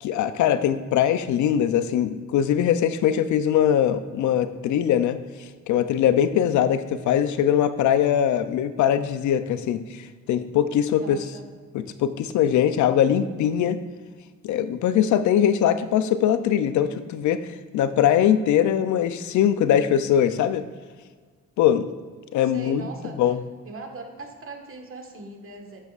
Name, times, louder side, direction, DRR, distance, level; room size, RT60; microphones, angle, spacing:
voice 1, 0.0-5.2 5.7-11.2 11.7-13.8 14.4-17.5 17.7-20.7 21.6-21.9 22.3-22.9 23.2-23.4, left 9 dB, 75° left, 12 dB, 0.5 m, -21 dB
voice 2, 10.9-11.4 22.4-23.2 23.6-25.8, right 3 dB, 45° right, 3 dB, 1.5 m, -40 dB
9.2 x 8.0 x 2.5 m, 1.5 s
cardioid pair, 90°, 30 cm